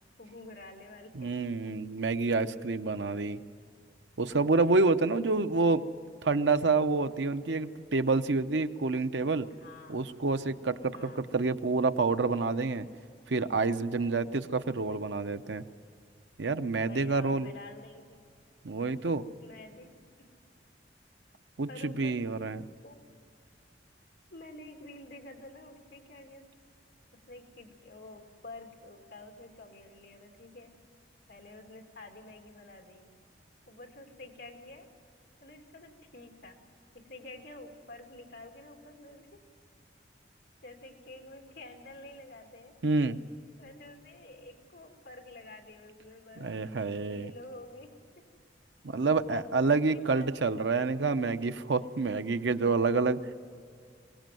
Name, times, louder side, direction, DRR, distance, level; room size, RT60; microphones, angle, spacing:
voice 1, 0.2-1.3 5.5-5.6 9.5-10.2 10.9-11.4 14.0-14.4 14.9-15.0 16.9-18.3 19.4-19.9 20.2-20.3 21.7-22.2 22.8-23.1 24.3-26.5 27.1-30.7 31.3-33.1 33.7-34.9 35.4-36.6 36.9-39.4 40.6-42.7 43.6-46.5 47.0-48.2 49.9-50.3, left 2 dB, 65° left, 3 dB, 2.7 m, -49 dB
voice 2, 1.1-3.4 4.2-5.8 6.2-9.5 9.9-12.9 13.3-15.6 16.4-17.5 18.6-19.2 21.6-22.6 42.8-43.2 46.4-47.3 48.8-53.2, right 3 dB, 85° right, 10 dB, 0.8 m, -28 dB
24.0 x 19.0 x 7.7 m, 2.2 s
head